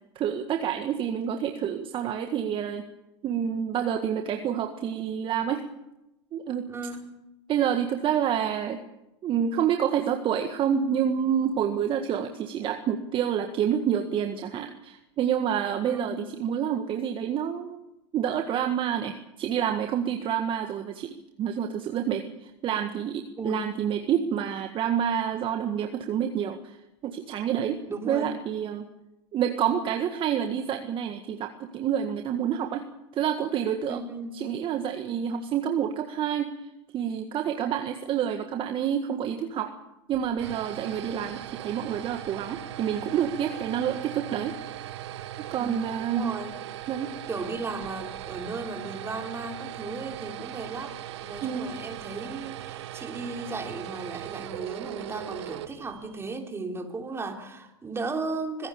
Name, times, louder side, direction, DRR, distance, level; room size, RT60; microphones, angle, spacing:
voice 1, 0.1-2.8 3.2-5.7 6.3-6.7 7.5-8.8 9.2-17.8 18.1-26.8 27.0-28.9 29.3-34.0 34.3-36.5 36.9-39.7 40.1-44.6 45.4-46.3 46.9-47.1 51.4-51.7, right 9 dB, 35° right, 6 dB, 1.7 m, -28 dB
voice 2, 6.6-7.2 15.8-16.2 23.4-23.7 27.9-28.3 33.9-34.3 35.3-35.4 45.6-45.7 46.1-46.5 47.3-58.7, right 3 dB, 15° right, 3 dB, 3.5 m, -35 dB
sound 1, 40.1-56.3, right 12 dB, 70° right, 1.6 m, -39 dB
26.0 x 16.5 x 7.0 m, 0.92 s
hypercardioid pair, 105°, 15 cm